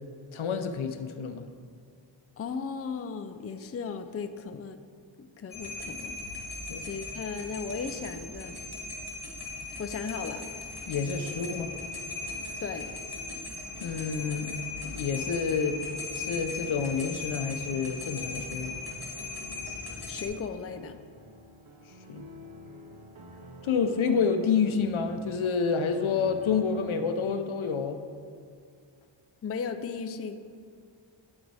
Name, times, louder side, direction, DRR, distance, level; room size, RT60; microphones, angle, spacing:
voice 1, 0.3-1.4 6.7-6.8 10.9-11.7 13.8-14.6 14.8-15.8 16.1-18.7 22.1-22.3 23.6-28.0, left 5 dB, 80° left, 8 dB, 0.6 m, -28 dB
voice 2, 2.4-4.8 5.2-6.2 6.8-8.6 9.8-10.5 12.6-12.9 20.0-21.0 29.4-30.4, left 5 dB, 35° left, 9 dB, 0.4 m, -36 dB
sound 1, 5.5-20.3, left 3 dB, 55° left, 1.3 m, -38 dB
sound 2, 11.2-27.1, equal, 80° right, 0.8 m, -49 dB
8.7 x 4.6 x 4.0 m, 2.2 s
wide cardioid pair, 65°, 47 cm